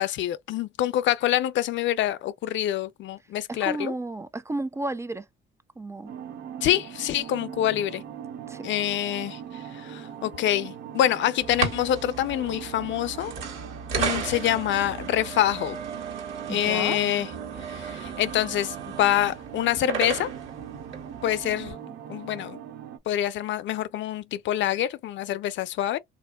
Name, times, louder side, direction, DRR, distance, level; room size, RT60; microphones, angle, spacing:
voice 1, 0.0-3.9 6.6-8.0 8.6-13.3 14.0-15.8 16.5-17.3 17.7-20.3 21.2-21.8 22.1-22.6 23.1-26.0, left 12 dB, 70° left, 0.4 m, -26 dB
voice 2, 3.5-5.3 5.8-6.1 8.5-8.6 16.5-17.0, right 2 dB, 15° right, 0.3 m, -32 dB
sound 1, 6.1-23.0, right 9 dB, 55° right, 0.6 m, -40 dB
sound 2, 11.4-21.7, right 6 dB, 85° right, 1.4 m, -35 dB
3.4 x 2.5 x 2.2 m
cardioid pair, 90°, 20 cm